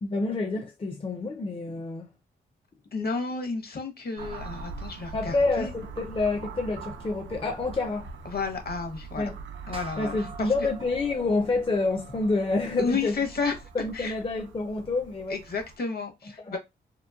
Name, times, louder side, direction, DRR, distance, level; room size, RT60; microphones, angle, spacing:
voice 1, 0.0-2.1 5.1-8.1 9.2-9.4 10.0-13.1 13.7-15.4 16.4-16.6, left 3 dB, 30° left, 0.5 m, -28 dB
voice 2, 2.9-5.7 8.2-9.3 9.7-10.5 12.8-14.1 15.3-16.6, left 4 dB, 55° left, 0.9 m, -32 dB
sound 1, 4.2-15.8, right 4 dB, 80° right, 0.5 m, -43 dB
sound 2, 9.7-14.5, right 5 dB, 30° right, 0.4 m, -47 dB
2.9 x 2.1 x 2.3 m
cardioid pair, 55°, 19 cm